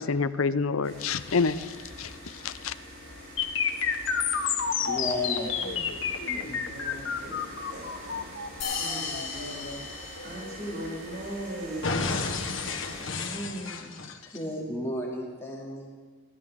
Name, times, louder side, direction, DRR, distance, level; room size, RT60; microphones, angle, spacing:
voice 1, 0.0-1.7 2.0-2.1 2.4-2.7, left 4 dB, 85° left, 13 dB, 0.7 m, -27 dB
sound 1, 0.8-13.1, equal, 70° right, 6.0 m, -45 dB
sound 2, 3.4-11.3 11.8-14.4, left 6 dB, 65° left, 1.3 m, -31 dB
voice 2, 4.6-5.7 14.3-15.9, equal, 15° left, -4 dB, 2.7 m, -34 dB
voice 3, 6.2-7.3 7.6-8.2 8.8-9.8 10.2-11.9 13.1-13.9, right 1 dB, 50° right, -5 dB, 7.1 m, -39 dB
sound 3, 8.6-10.9, left 5 dB, 40° left, 4.7 m, -36 dB
23.5 x 16.5 x 3.7 m, 1.5 s
head